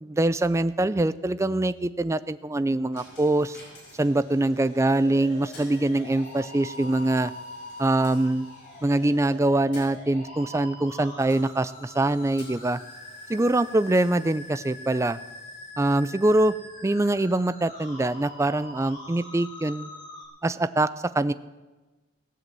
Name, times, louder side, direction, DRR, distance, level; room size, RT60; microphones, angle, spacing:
voice 1, 0.0-3.6 4.0-7.3 7.8-8.5 8.8-12.8 13.3-15.2 15.8-16.5 16.8-19.9 20.4-21.3, right 2 dB, 15° right, 15 dB, 0.3 m, -24 dB
Coin (dropping), 2.9-19.9, left 1 dB, 55° left, 5.3 m, -53 dB
sound 1, 4.7-20.2, left 1 dB, 35° left, 4.4 m, -43 dB
18.0 x 7.9 x 7.5 m, 1.2 s
head